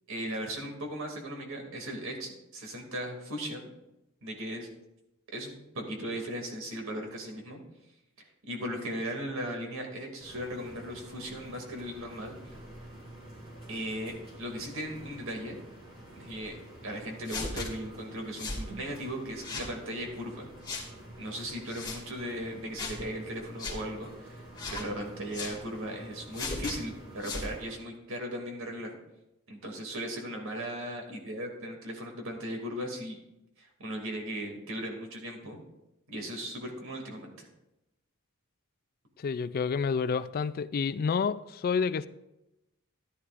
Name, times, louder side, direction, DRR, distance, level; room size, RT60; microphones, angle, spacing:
voice 1, 0.1-3.7 4.2-4.7 5.3-7.6 8.5-12.6 13.7-15.6 16.1-16.6 16.8-20.5 21.2-24.4 24.7-29.0 29.5-33.2 33.6-35.6 36.1-37.5, equal, 65° right, 2 dB, 2.4 m, -37 dB
sound 1, 10.2-27.7, right 1 dB, 30° right, 3.8 m, -48 dB
sound 2, 17.3-17.7 18.4-18.6 19.4-19.7 20.6-20.9 21.7-22.0 22.8-23.0 23.6-23.8 24.6-24.9 25.3-25.6 26.3-26.8 27.2-27.5, left 3 dB, 20° left, 2.3 m, -36 dB
voice 2, 39.2-42.1, left 5 dB, 45° left, 15 dB, 0.3 m, -29 dB
14.5 x 11.0 x 2.5 m, 0.91 s
head